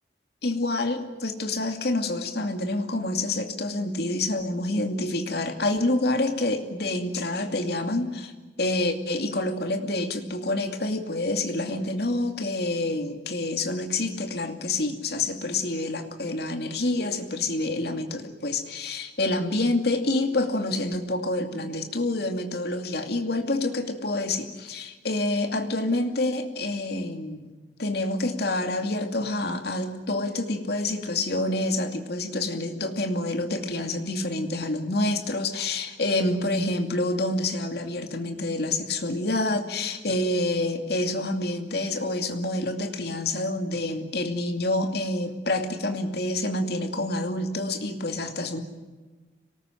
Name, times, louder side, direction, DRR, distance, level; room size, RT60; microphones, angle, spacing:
voice 1, 0.4-8.3 8.6-27.5 27.8-48.6, left 2 dB, 65° left, 5 dB, 2.5 m, -27 dB
26.0 x 19.0 x 9.1 m, 1.3 s
head